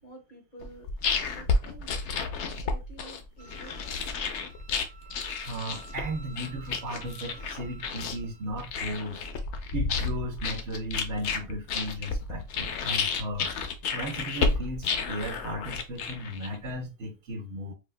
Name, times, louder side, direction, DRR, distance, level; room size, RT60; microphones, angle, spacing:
voice 1, 0.0-0.9 1.3-4.3, right 2 dB, 45° left, 1.3 m, -50 dB
sound 1, 0.6-16.7, left 4 dB, 90° left, 0.9 m, -31 dB
Wind instrument woodwind instrument, 3.4-8.5, right 4 dB, 40° right, 0.3 m, -52 dB
voice 2, 5.5-9.2 9.7-13.5 13.9-17.7, equal, 70° right, 0.9 m, -36 dB
4.8 x 2.2 x 2.2 m
omnidirectional pair, 1.2 m